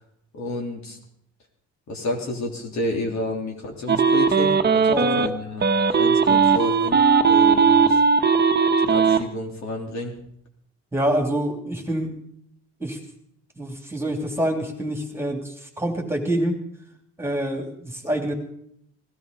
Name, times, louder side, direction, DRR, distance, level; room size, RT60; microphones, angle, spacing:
voice 1, 0.3-1.0 1.9-5.7 6.0-7.0 7.2-8.0 8.8-10.1, left 1 dB, 65° left, 0 dB, 3.6 m, -30 dB
sound 1, 3.9-5.3 5.6-9.2, right 5 dB, 35° right, 1.1 m, -18 dB
voice 2, 4.9-5.3 10.9-12.1 12.8-13.0 13.6-16.6 17.2-18.3, right 1 dB, 10° right, 2 dB, 3.0 m, -26 dB
18.5 x 13.0 x 5.3 m, 0.69 s
cardioid pair, 90°, 30 cm